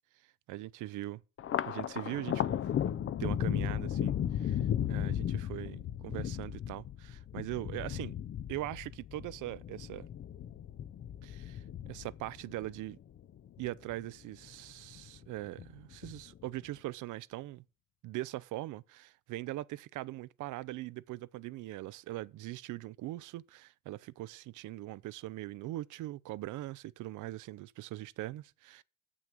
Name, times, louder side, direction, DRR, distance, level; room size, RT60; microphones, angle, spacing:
voice 1, 0.5-1.2 1.7-2.6 3.2-8.1 8.5-10.1 11.2-13.0 13.6-17.6 18.0-28.8, right 16 dB, 80° right, 0.5 m, -41 dB
Thunder, 1.4-14.0 14.4-15.2 15.6-16.4, left 10 dB, 45° left, 0.5 m, -35 dB
6.9 x 6.2 x 7.5 m
cardioid pair, 90°, 30 cm